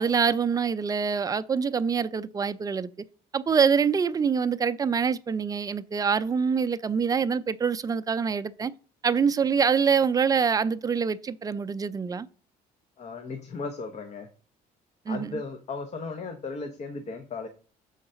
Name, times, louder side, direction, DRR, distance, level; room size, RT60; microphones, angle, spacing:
voice 1, 0.0-2.9 3.3-8.7 9.0-12.3 15.1-15.4, right 6 dB, 20° right, 0.4 m, -25 dB
voice 2, 13.0-14.3 15.1-17.5, left 4 dB, 40° left, 0.9 m, -36 dB
6.5 x 3.9 x 5.5 m
cardioid pair, 110°, 17 cm